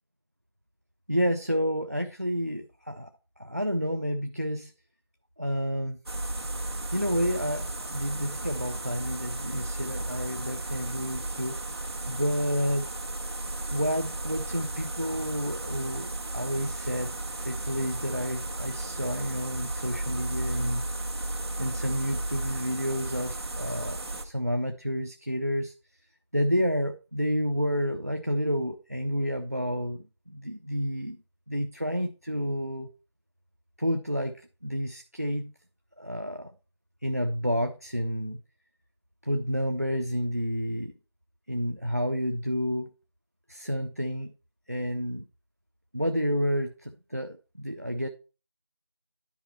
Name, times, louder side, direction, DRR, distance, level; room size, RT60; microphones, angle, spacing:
voice 1, 1.1-3.1 3.4-4.7 5.4-6.0 6.9-11.6 12.1-12.9 13.7-16.1 16.3-17.1 17.4-20.9 21.6-25.7 26.3-31.2 31.5-32.9 33.8-35.5 36.0-36.5 37.0-38.4 39.2-40.9 41.5-42.9 43.5-44.3 44.7-45.2 45.9-48.1, equal, 35° right, 7 dB, 0.4 m, -30 dB
sound 1, 6.1-24.2, right 2 dB, 60° right, 1.7 m, -34 dB
10.0 x 5.2 x 4.2 m, 0.34 s
figure-of-eight pair, 175°, 15 cm